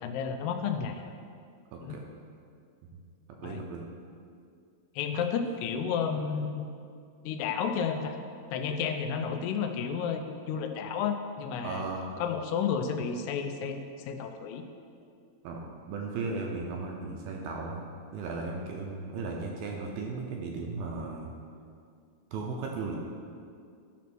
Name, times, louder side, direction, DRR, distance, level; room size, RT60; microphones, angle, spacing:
voice 1, 0.0-1.1 1.8-2.0 3.4-3.6 5.0-6.7 7.2-8.2 8.5-11.9 12.2-14.6, left 6 dB, 85° left, 6 dB, 2.7 m, -32 dB
voice 2, 1.7-2.1 3.4-3.9 11.6-12.2 15.4-17.8 18.1-21.3 22.3-23.0, right 3 dB, 75° right, 0 dB, 2.3 m, -36 dB
11.5 x 4.2 x 6.0 m, 2.3 s
omnidirectional pair, 4.7 m